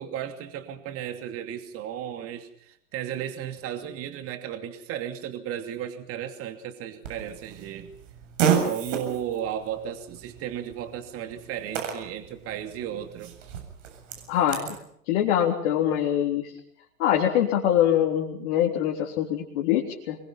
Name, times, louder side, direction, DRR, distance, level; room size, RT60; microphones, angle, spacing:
voice 1, 0.0-7.9 8.6-13.4, right 10 dB, 30° right, 7 dB, 2.7 m, -34 dB
Fart, 7.0-14.8, right 8 dB, 55° right, 7.8 m, -32 dB
voice 2, 14.3-14.7 15.1-16.5 17.0-20.2, left 10 dB, 50° left, -1 dB, 3.8 m, -24 dB
25.5 x 23.0 x 5.8 m, 0.68 s
figure-of-eight pair, 105°, 44 cm